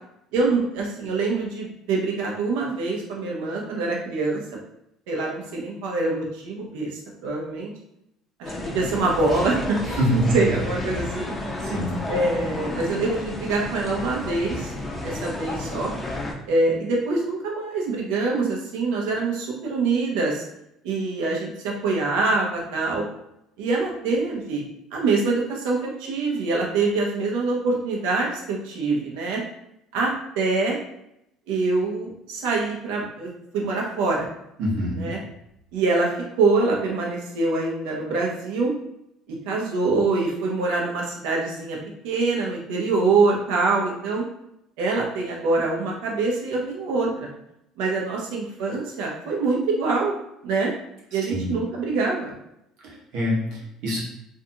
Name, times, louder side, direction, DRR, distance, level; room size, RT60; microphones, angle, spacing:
voice 1, 0.3-4.4 5.1-7.7 8.4-9.8 10.1-11.7 12.1-14.7 15.0-15.9 16.5-20.4 20.8-23.1 23.6-24.6 24.9-29.4 29.9-30.8 31.5-34.3 35.0-35.2 35.7-36.1 36.4-38.7 39.3-41.8 42.0-44.2 44.8-47.3 47.8-50.1 50.4-50.7 51.1-52.3, right 3 dB, 90° right, -2 dB, 0.7 m, -24 dB
sound 1, 8.4-16.3, left 2 dB, 10° left, 0.4 m, -32 dB
voice 2, 9.9-10.3 11.6-12.0 34.6-35.1 51.2-51.5 52.8-54.0, equal, 70° right, -4 dB, 1.0 m, -25 dB
2.5 x 2.3 x 2.7 m, 0.81 s
cardioid pair, 140°, 0 cm